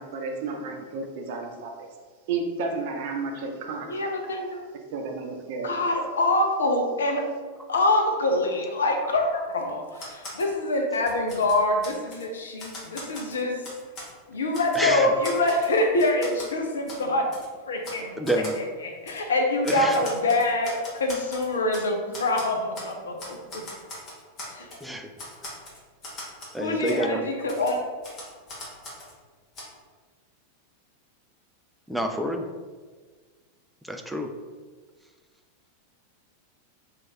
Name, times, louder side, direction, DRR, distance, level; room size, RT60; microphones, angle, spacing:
voice 1, 0.0-1.7 2.3-3.9 4.9-5.7, right 4 dB, 50° right, 3 dB, 0.5 m, -32 dB
voice 2, 3.8-4.7 5.6-7.3 7.7-13.6 14.3-17.3 17.7-18.4 18.8-23.6 24.4-24.7 26.6-27.8, left 2 dB, 70° left, 3 dB, 0.5 m, -25 dB
Typewriter, 9.9-10.5 10.9-12.2 12.6-14.1 14.5-14.9 15.2-16.5 16.9-17.0 17.3-17.5 17.8-18.0 18.2-18.6 19.1-19.2 19.6-21.9 22.1-22.9 23.2-24.8 25.2-26.6 26.8-27.0 27.5-29.1 29.5-29.6, left 1 dB, 30° left, 1.2 m, -40 dB
voice 3, 14.7-15.1 18.2-18.6 19.6-20.0 24.8-25.1 26.5-27.3 31.9-32.5 33.8-34.3, right 1 dB, ahead, 4 dB, 0.3 m, -28 dB
3.0 x 2.4 x 4.2 m, 1.5 s
figure-of-eight pair, 90°, 0 cm